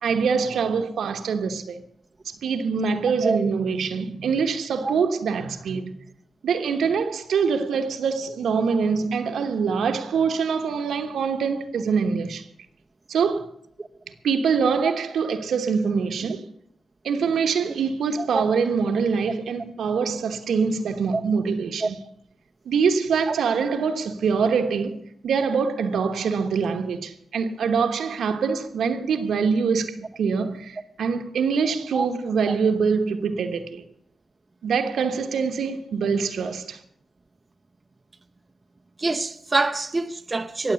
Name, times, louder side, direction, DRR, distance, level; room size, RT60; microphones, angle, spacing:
voice 1, 0.0-1.8 2.4-5.9 6.4-12.4 13.1-13.5 14.2-16.4 17.0-21.9 22.6-33.8 34.6-36.8, right 5 dB, 80° right, 1.1 m, -24 dB
voice 2, 18.2-18.5 21.1-21.2 21.8-21.9 23.3-23.4 31.9-32.1 39.0-40.7, right 3 dB, 30° right, 0.7 m, -25 dB
19.0 x 7.5 x 7.0 m
cardioid pair, 60°, 0 cm